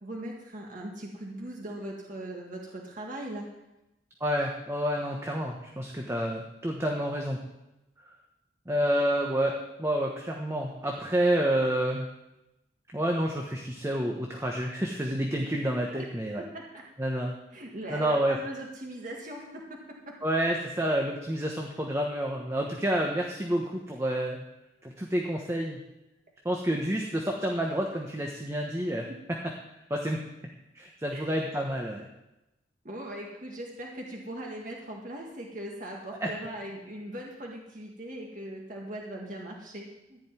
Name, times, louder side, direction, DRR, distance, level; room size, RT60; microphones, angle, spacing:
voice 1, 0.0-3.5 17.5-20.1 29.1-29.2 31.1-31.2 32.8-40.2, right 1 dB, 50° right, -1 dB, 1.8 m, -40 dB
voice 2, 4.2-7.4 8.7-12.1 12.9-16.4 17.0-17.3 17.9-18.4 20.2-24.4 24.8-25.8 26.4-29.1 29.9-30.2 30.7-32.1 36.2-36.3, right 1 dB, 15° right, 0 dB, 1.2 m, -29 dB
14.5 x 5.3 x 9.1 m, 0.94 s
head